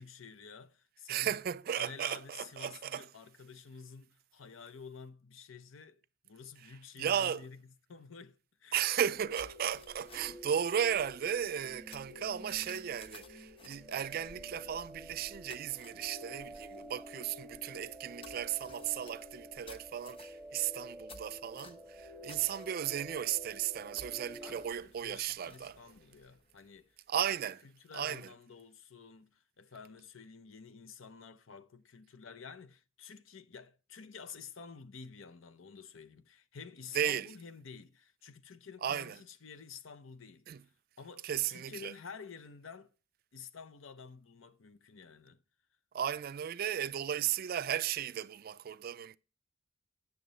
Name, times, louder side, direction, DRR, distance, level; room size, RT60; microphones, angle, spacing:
voice 1, 0.0-1.3 1.7-7.6 7.9-8.8 24.4-40.7 41.0-42.9 43.3-45.4, left 5 dB, 80° left, 0.7 m, -50 dB
voice 2, 1.1-3.0 7.0-7.4 8.7-25.8 27.1-27.6 27.9-28.3 36.9-37.3 38.8-39.2 40.5-40.6 41.2-41.9 45.9-49.2, right 9 dB, 50° right, 0.3 m, -35 dB
sound 1, 8.7-24.7, equal, ahead, 0.8 m, -50 dB
sound 2, 9.0-26.9, left 2 dB, 30° left, 0.9 m, -58 dB
9.3 x 6.6 x 4.0 m
head